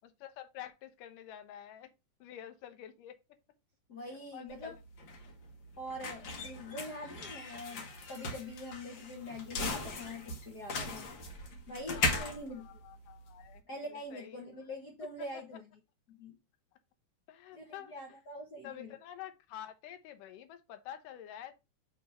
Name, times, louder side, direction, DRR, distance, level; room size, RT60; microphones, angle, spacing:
voice 1, 0.0-1.9 2.2-3.2 4.3-4.7 11.9-13.6 13.9-14.5 15.3-15.4 17.3-17.9 18.6-21.5, left 11 dB, 85° left, 2.5 m, -48 dB
voice 2, 3.9-4.8 5.8-11.1 11.7-12.7 13.7-15.7 16.1-16.4 17.5-18.9, left 1 dB, 70° left, 0.9 m, -44 dB
sound 1, 4.5-13.6, left 3 dB, 55° left, 1.4 m, -38 dB
6.1 x 3.5 x 5.3 m
omnidirectional pair, 3.7 m